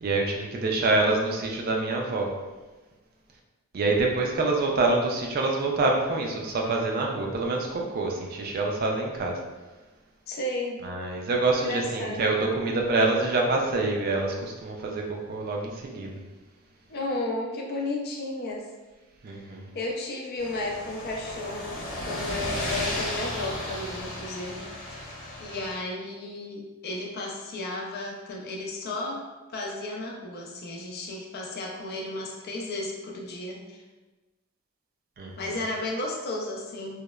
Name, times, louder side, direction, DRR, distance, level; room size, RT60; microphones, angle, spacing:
voice 1, 0.0-2.3 3.7-9.4 10.8-16.1 19.2-19.7 35.2-35.6, right 3 dB, 45° right, 0 dB, 0.3 m, -26 dB
voice 2, 10.3-10.8 11.5-12.3 16.9-18.6 19.7-21.7 22.0-24.7 25.4-29.2 29.5-33.8 35.4-37.0, left 2 dB, 45° left, 0 dB, 0.4 m, -33 dB
sound 1, 20.4-25.7, left 1 dB, 80° left, 0.9 m, -34 dB
2.9 x 2.0 x 2.2 m, 1.2 s
head